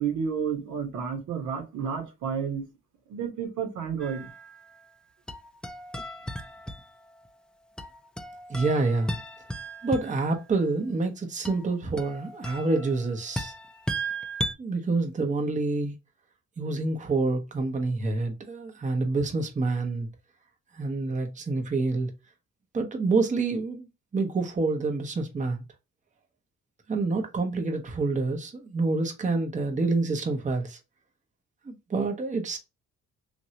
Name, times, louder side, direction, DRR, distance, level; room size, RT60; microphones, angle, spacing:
voice 1, 0.0-2.6 3.1-4.3, right 7 dB, 80° right, 1.2 m, -31 dB
sound 1, 4.0-4.8 5.3-7.3 7.8-10.4 11.4-14.5, right 1 dB, 5° left, 0.4 m, -36 dB
voice 2, 8.5-9.2 9.8-13.5 14.6-15.9 16.6-20.1 20.7-22.1 22.7-23.9 24.1-25.6 26.9-30.8 31.7-32.6, right 3 dB, 25° right, 0.8 m, -27 dB
3.1 x 2.6 x 2.8 m
cardioid pair, 90°, 30 cm